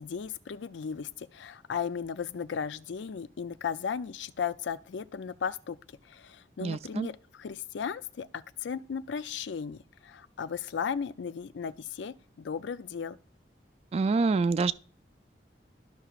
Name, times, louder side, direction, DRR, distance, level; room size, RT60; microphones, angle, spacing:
voice 1, 0.0-5.8 6.1-13.2, left 6 dB, 90° left, 0.4 m, -36 dB
voice 2, 6.6-7.1 13.9-14.7, right 4 dB, 35° right, 0.3 m, -26 dB
13.0 x 5.7 x 2.4 m
head